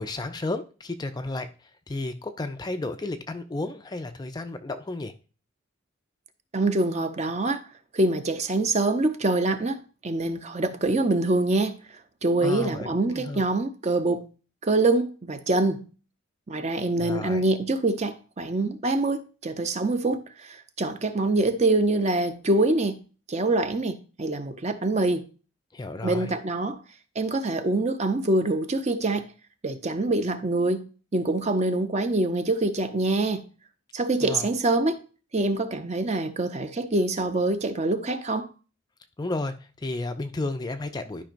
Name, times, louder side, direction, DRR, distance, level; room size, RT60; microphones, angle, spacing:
voice 1, 0.0-5.1 12.4-13.4 17.0-17.4 25.7-26.3 34.2-34.5 39.2-41.3, left 2 dB, 20° left, 0.4 m, -33 dB
voice 2, 6.5-7.6 7.9-11.8 12.2-14.3 14.6-15.9 16.5-25.3 26.0-26.8 27.2-29.3 29.6-33.5 33.9-35.0 35.3-38.5, right 2 dB, 35° right, 0.6 m, -25 dB
12.0 x 5.2 x 2.5 m
head